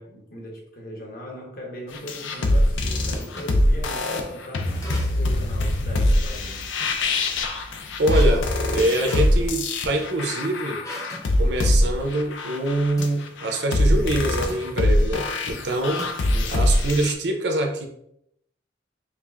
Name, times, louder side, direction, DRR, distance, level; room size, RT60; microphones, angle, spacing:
voice 1, 0.0-6.7 16.2-16.7, equal, 50° left, -1 dB, 1.0 m, -39 dB
sound 1, 1.9-17.1, left 1 dB, 85° left, 0.5 m, -23 dB
sound 2, 3.1-3.6 4.8-5.4 5.8-7.0 8.1-10.1 10.8-11.3 11.6-11.8 13.0-13.2 14.5-14.7 16.0-16.6, left 1 dB, 15° left, 0.6 m, -40 dB
voice 2, 8.0-8.5 8.7-10.8 11.4-16.0 16.5-17.9, right 1 dB, 65° right, 3 dB, 0.6 m, -24 dB
5.4 x 2.5 x 2.4 m, 0.74 s
head